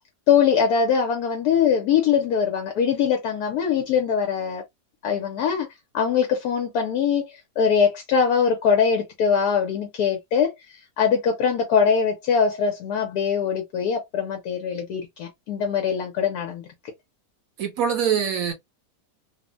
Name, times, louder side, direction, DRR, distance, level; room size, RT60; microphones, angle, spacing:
voice 1, 0.3-4.6 5.0-5.7 5.9-16.6, left 7 dB, 70° left, 1.1 m, -22 dB
voice 2, 17.6-18.5, right 7 dB, 65° right, 1.0 m, -23 dB
3.2 x 2.1 x 2.5 m
omnidirectional pair, 1.8 m